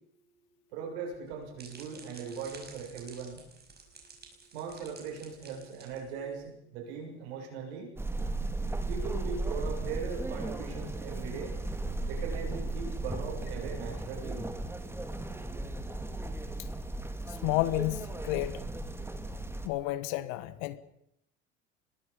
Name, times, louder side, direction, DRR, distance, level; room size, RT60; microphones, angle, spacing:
voice 1, 0.7-3.4 4.5-7.9 8.9-11.6 12.1-14.5, right 5 dB, 70° right, 7.5 m, -39 dB
sound 1, 1.1-6.5, right 4 dB, 30° right, 5.6 m, -52 dB
sound 2, 8.0-19.7, right 2 dB, 5° right, 2.5 m, -36 dB
voice 2, 17.3-18.6 19.6-20.8, left 17 dB, 65° left, 1.4 m, -31 dB
26.5 x 20.5 x 5.5 m
hypercardioid pair, 75°, 34 cm